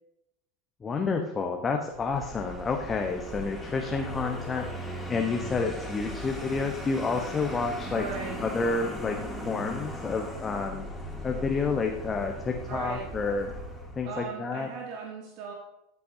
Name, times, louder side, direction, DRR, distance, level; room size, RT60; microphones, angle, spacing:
voice 1, 0.8-8.0 8.4-9.2 9.4-10.9 11.2-13.6 14.0-14.7, left 4 dB, 20° left, 3 dB, 1.1 m, -29 dB
Vehicle, 1.9-14.2, equal, 5° left, 2.8 m, -38 dB
voice 2, 7.8-8.4 12.7-13.1 14.0-15.5, right 5 dB, 50° right, 0 dB, 1.6 m, -38 dB
14.0 x 8.3 x 2.8 m, 0.88 s
figure-of-eight pair, 80°, 0 cm